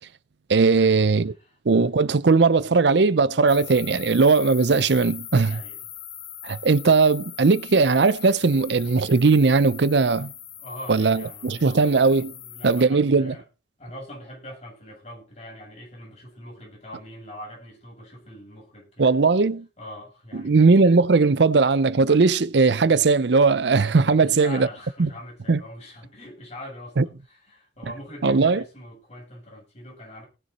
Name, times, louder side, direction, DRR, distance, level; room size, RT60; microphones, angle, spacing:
voice 1, 0.5-1.3 1.7-5.6 6.4-10.3 10.9-12.3 12.6-13.3 19.0-19.7 20.3-24.7 25.0-25.1 25.5-25.6 27.0-27.1 28.2-28.6, right 4 dB, 65° right, 0.6 m, -19 dB
sound 1, 3.5-12.8, left 10 dB, 80° left, 2.5 m, -41 dB
voice 2, 5.4-5.9 10.6-12.0 12.2-13.5 13.8-19.2 19.8-20.6 24.2-30.3, left 1 dB, 35° left, 7.6 m, -42 dB
19.0 x 7.0 x 4.1 m
head